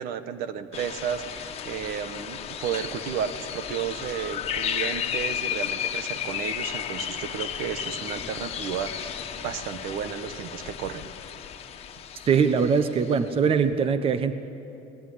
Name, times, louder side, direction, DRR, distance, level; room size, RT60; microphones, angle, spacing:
voice 1, 0.0-11.1, right 8 dB, 65° right, 11 dB, 1.4 m, -33 dB
sound 1, 0.7-13.3, left 9 dB, 40° left, 1.6 m, -33 dB
voice 2, 12.3-14.3, right 6 dB, 35° right, 10 dB, 1.1 m, -22 dB
28.0 x 19.5 x 10.0 m, 2.9 s
cardioid pair, 120°, 17 cm